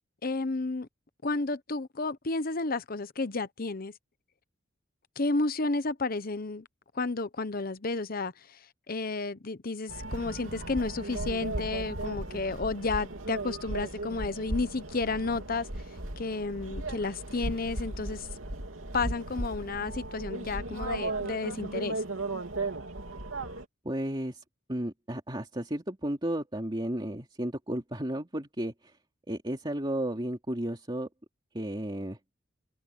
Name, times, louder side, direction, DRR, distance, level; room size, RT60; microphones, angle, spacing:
voice 1, 0.2-0.9 1.2-3.9 5.2-6.7 6.9-8.3 8.9-15.7 16.2-18.3 18.9-22.0, left 3 dB, 45° left, 0.9 m, -32 dB
sound 1, 9.9-23.6, right 2 dB, 85° right, 3.0 m, -36 dB
voice 2, 23.8-24.4 24.7-28.9 29.3-31.1 31.5-32.2, right 1 dB, 25° right, 2.8 m, -33 dB
head